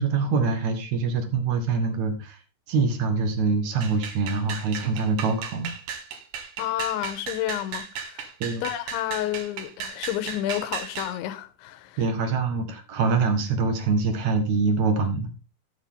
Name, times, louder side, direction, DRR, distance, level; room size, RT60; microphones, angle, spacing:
voice 1, 0.0-2.4 2.7-5.7 8.4-8.6 12.0-15.3, right 4 dB, 80° right, 1.6 m, -24 dB
sound 1, 3.8-11.2, right 7 dB, 60° right, 2.4 m, -36 dB
voice 2, 6.6-8.3 8.6-12.1, left 13 dB, 80° left, 3.0 m, -30 dB
15.5 x 8.1 x 3.7 m
omnidirectional pair, 5.9 m